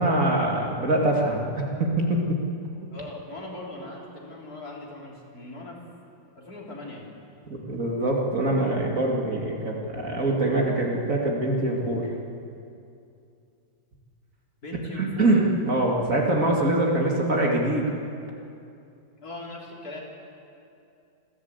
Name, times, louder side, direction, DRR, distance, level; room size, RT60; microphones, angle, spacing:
voice 1, 0.0-2.4 7.5-12.1 15.0-17.9, right 1 dB, 45° right, -1 dB, 2.6 m, -24 dB
voice 2, 2.9-5.8 6.4-7.1 14.6-15.4 19.2-20.0, left 2 dB, 55° left, -3 dB, 4.0 m, -39 dB
27.0 x 13.0 x 8.1 m, 2.6 s
omnidirectional pair, 2.0 m